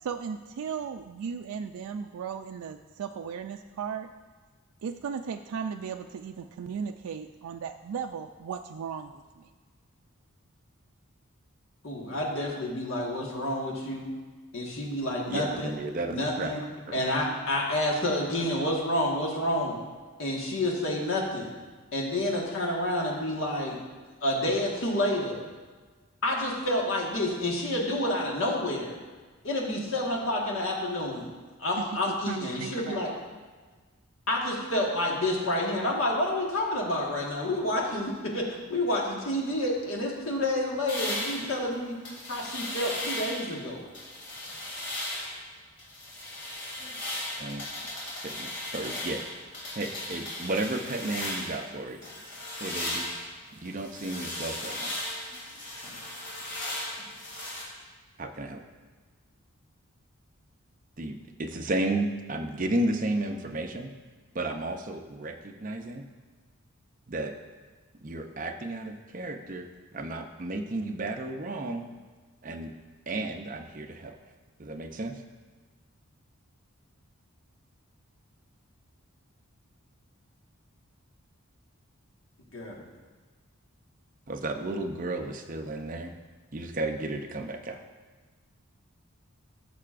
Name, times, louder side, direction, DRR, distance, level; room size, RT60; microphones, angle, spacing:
voice 1, 0.0-4.1 4.8-9.5 31.8-31.9 32.3-33.2, right 6 dB, 85° right, 6 dB, 0.3 m, -36 dB
voice 2, 11.8-14.1 14.5-15.8 16.1-19.8 20.2-21.5 21.9-23.8 24.2-25.4 26.2-29.0 29.4-31.3 31.6-33.1 34.3-42.0 42.3-43.9 82.5-82.8, left 1 dB, 65° left, -2 dB, 1.5 m, -29 dB
voice 3, 15.3-16.6 16.9-17.0 47.4-47.6 48.2-49.3 49.7-52.0 52.6-53.1 53.6-55.0 58.2-58.6 61.0-63.9 64.3-66.0 67.1-67.3 68.0-71.9 72.4-72.7 73.1-74.2 74.6-75.2 84.3-86.1 86.5-87.8, right 2 dB, 35° right, 5 dB, 0.5 m, -33 dB
sound 1, 40.9-43.5 43.9-45.4 45.8-51.7 52.0-57.6, left 1 dB, 50° left, 2.5 m, -36 dB
13.5 x 6.7 x 2.5 m, 1.4 s
head